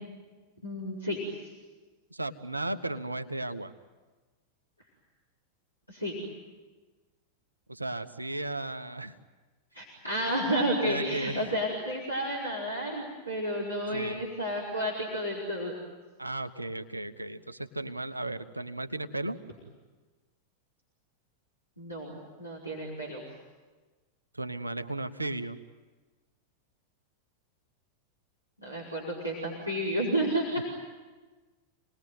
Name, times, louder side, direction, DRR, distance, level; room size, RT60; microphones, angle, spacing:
voice 1, 0.6-1.5 5.9-6.1 9.7-15.7 21.8-23.2 28.6-30.6, equal, 90° left, -5 dB, 4.8 m, -31 dB
voice 2, 2.1-3.7 7.7-9.1 10.9-11.5 13.9-14.2 16.2-19.4 24.3-25.6 30.6-30.7, right 2 dB, 85° right, 11 dB, 1.2 m, -35 dB
28.5 x 20.0 x 9.4 m, 1.3 s
figure-of-eight pair, 90°, 0 cm